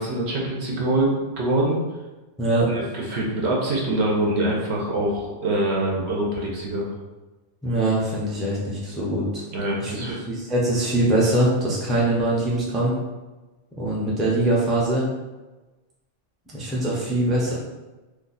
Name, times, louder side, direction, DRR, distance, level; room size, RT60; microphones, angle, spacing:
voice 1, 0.0-1.8 2.7-6.9 9.5-10.2, right 1 dB, 65° right, -3 dB, 1.0 m, -24 dB
voice 2, 2.4-2.8 7.6-9.4 9.8-13.0 13.8-15.1 16.5-17.5, right 1 dB, ahead, -6 dB, 0.5 m, -23 dB
2.7 x 2.3 x 3.9 m, 1.1 s
omnidirectional pair, 1.2 m